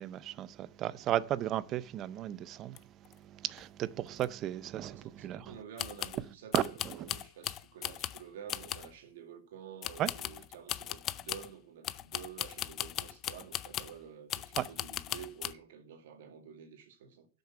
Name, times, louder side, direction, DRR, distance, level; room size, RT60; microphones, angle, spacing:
voice 1, 0.0-2.8 3.2-5.5 6.5-6.6 10.0-10.1 14.6-14.7, right 12 dB, 25° right, 0.5 m, -34 dB
sound 1, 2.8-2.9 3.0-3.1 3.6-3.7 4.2-4.3 5.8-6.2 6.5-8.2 8.5-8.9 9.8-11.5 11.8-14.0 14.3-15.5, left 12 dB, 25° left, 0.5 m, -38 dB
voice 2, 4.9-17.3, right 8 dB, 60° right, 2.1 m, -50 dB
11.5 x 6.6 x 5.8 m
supercardioid pair, 155°, 0 cm